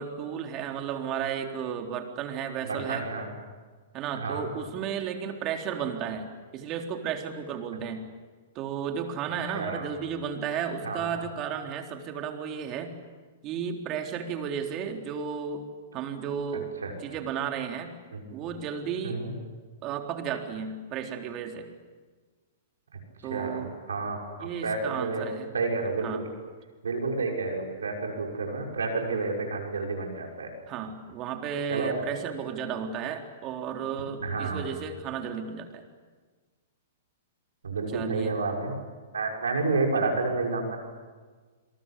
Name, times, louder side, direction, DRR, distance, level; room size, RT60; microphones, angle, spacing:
voice 1, 0.0-3.1 3.9-6.3 6.5-8.0 8.6-13.0 13.4-15.6 15.9-16.7 17.0-17.9 18.3-19.2 19.8-21.7 23.2-23.7 24.4-25.5 26.0-26.2 30.7-35.8 37.9-38.3, right 7 dB, 35° right, 4 dB, 3.7 m, -33 dB
voice 2, 2.6-3.3 4.1-4.5 9.5-9.8 10.8-11.1 16.8-16.9 18.1-18.3 19.0-19.3 22.9-23.0 23.3-25.2 25.5-26.2 26.8-30.5 31.7-32.0 34.2-34.6 37.6-38.8 39.1-40.8, right 3 dB, 80° right, 1 dB, 6.2 m, -30 dB
28.5 x 22.5 x 8.5 m, 1.4 s
hypercardioid pair, 115°, 0 cm